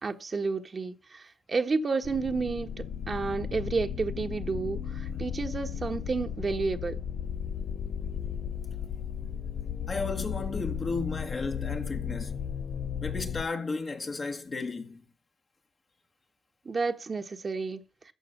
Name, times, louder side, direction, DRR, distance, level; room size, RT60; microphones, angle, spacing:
voice 1, 0.0-7.0 16.6-17.8, right 4 dB, 50° right, 1.4 m, -31 dB
sound 1, 2.0-13.4, left 8 dB, 70° left, 0.7 m, -35 dB
voice 2, 9.9-12.4 13.0-15.0, left 3 dB, 50° left, 1.8 m, -34 dB
14.0 x 4.8 x 8.4 m
supercardioid pair, 50°, 0 cm